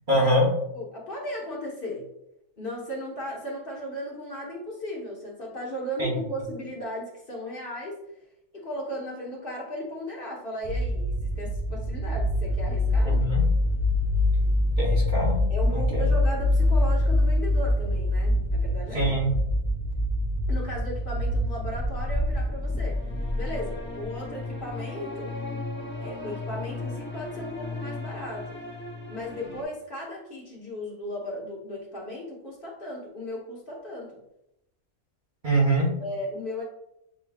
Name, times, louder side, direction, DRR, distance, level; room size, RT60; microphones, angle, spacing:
voice 1, 0.1-0.5 6.0-6.1 13.0-13.4 14.8-16.0 18.9-19.3 35.4-35.9, right 1 dB, 40° right, -5 dB, 1.1 m, -24 dB
voice 2, 0.7-2.1 2.6-8.0 8.5-13.2 15.5-19.2 20.5-23.0 23.3-25.3 26.0-28.6 29.1-34.2 36.0-36.6, equal, 45° left, -4 dB, 1.2 m, -36 dB
sound 1, 10.6-22.4, right 2 dB, 65° right, 0.4 m, -28 dB
sound 2, 12.4-20.7, left 4 dB, ahead, 1.0 m, -26 dB
sound 3, 20.9-29.6, left 2 dB, 15° left, 0.4 m, -34 dB
7.0 x 3.0 x 2.3 m, 0.82 s
omnidirectional pair, 1.4 m